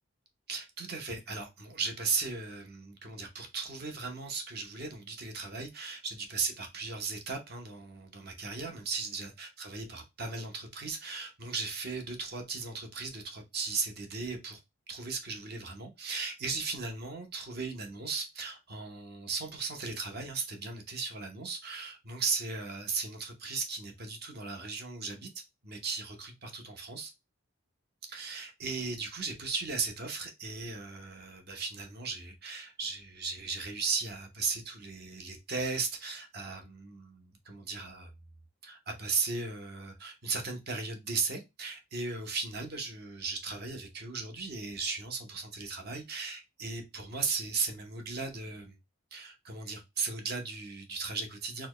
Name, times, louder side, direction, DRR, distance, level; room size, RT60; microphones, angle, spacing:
voice 1, 0.5-14.6 14.9-25.3 25.6-27.1 28.1-38.1 38.6-48.8 49.1-51.7, right 4 dB, 50° right, 0.8 m, -37 dB
4.2 x 2.2 x 3.1 m
head